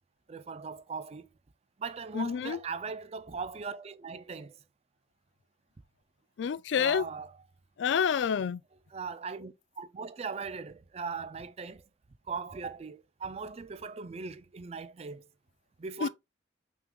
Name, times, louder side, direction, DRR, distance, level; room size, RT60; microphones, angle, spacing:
voice 1, 0.3-1.3 1.8-4.6 6.7-7.4 8.9-11.8 12.3-15.3 15.8-16.1, right 5 dB, 35° right, 0.4 m, -39 dB
voice 2, 2.1-2.6 6.4-7.1 7.8-8.6 16.0-16.1, left 7 dB, 80° left, 0.4 m, -28 dB
5.8 x 3.8 x 2.3 m
head